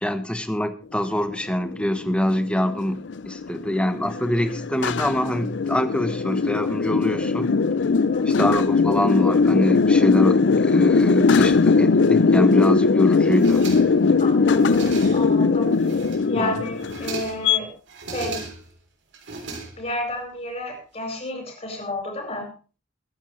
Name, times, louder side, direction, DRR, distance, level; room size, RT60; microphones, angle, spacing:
voice 1, 0.0-7.5 8.3-13.6 16.4-16.5, equal, 5° left, 9 dB, 1.1 m, -25 dB
sound 1, 1.2-17.6, left 4 dB, 70° left, 0.5 m, -20 dB
voice 2, 8.0-8.3 14.2-15.9 16.3-17.7 18.1-18.5 19.7-22.5, left 1 dB, 35° left, 3 dB, 4.9 m, -31 dB
sound 2, 13.2-14.1 14.5-15.4 15.8-16.4 16.7-17.5 17.9-18.8 19.1-20.1, right 3 dB, 75° right, 3.3 m, -36 dB
22.0 x 9.7 x 3.2 m, 0.36 s
head